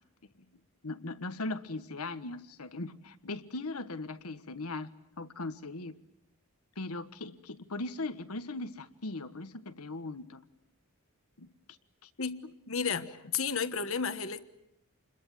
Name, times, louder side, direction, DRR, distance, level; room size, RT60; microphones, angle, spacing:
voice 1, 0.8-6.0 6.8-10.4 11.4-11.5 12.0-12.1 13.0-13.1, left 2 dB, 90° left, 11 dB, 1.4 m, -39 dB
voice 2, 12.2-14.4, left 6 dB, 65° left, 12 dB, 1.4 m, -33 dB
28.0 x 22.0 x 9.1 m, 0.83 s
head